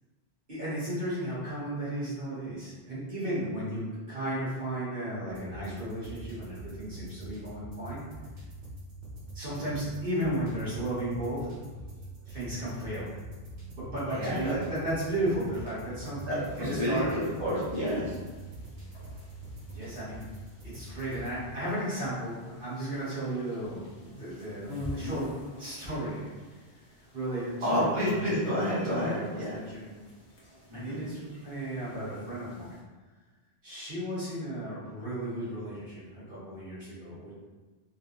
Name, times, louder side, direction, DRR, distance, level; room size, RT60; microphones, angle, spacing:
voice 1, 0.5-8.0 9.3-11.5 12.2-13.1 13.7-17.1 19.7-20.2 20.6-25.3 25.6-26.4 27.1-28.5 28.8-29.9 30.7-32.8 33.6-37.3, right 1 dB, 60° right, -10 dB, 1.7 m, -34 dB
sound 1, 5.3-21.4, right 1 dB, 75° right, 1.2 m, -44 dB
voice 2, 14.1-14.5 16.3-18.2 27.6-29.5 30.7-31.0, equal, 30° right, -11 dB, 1.2 m, -29 dB
sound 2, 16.3-32.8, left 1 dB, 85° left, 1.2 m, -47 dB
3.9 x 2.5 x 2.9 m, 1.3 s
omnidirectional pair, 1.0 m